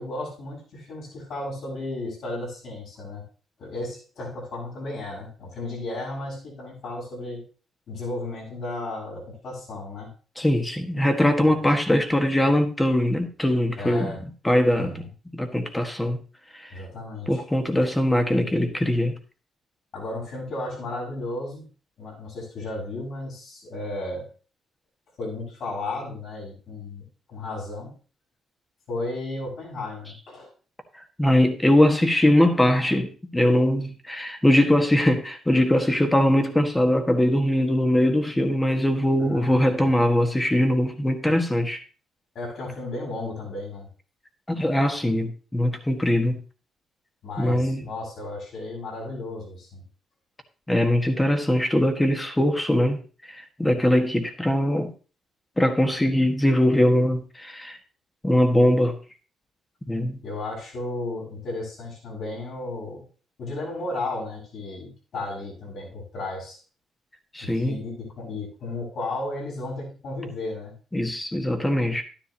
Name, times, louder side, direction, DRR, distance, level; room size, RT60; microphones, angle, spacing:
voice 1, 0.0-3.2 3.6-7.4 7.9-10.1 11.4-11.6 13.8-14.2 14.7-15.1 16.7-17.5 19.9-21.7 22.0-24.3 25.2-27.9 28.9-30.5 39.2-39.8 42.3-43.9 47.2-49.8 60.2-63.0 63.4-66.6 67.4-70.7, left 2 dB, 65° left, 6.3 m, -34 dB
voice 2, 10.4-14.1 14.4-15.0 15.3-16.2 17.3-19.2 31.2-41.8 44.5-46.4 47.4-47.8 50.7-53.0 53.3-54.9 55.6-57.8 58.2-59.0 59.9-60.2 67.3-67.8 70.9-72.0, left 1 dB, 10° left, 1.6 m, -21 dB
12.0 x 10.0 x 2.9 m
cardioid pair, 90°, 0 cm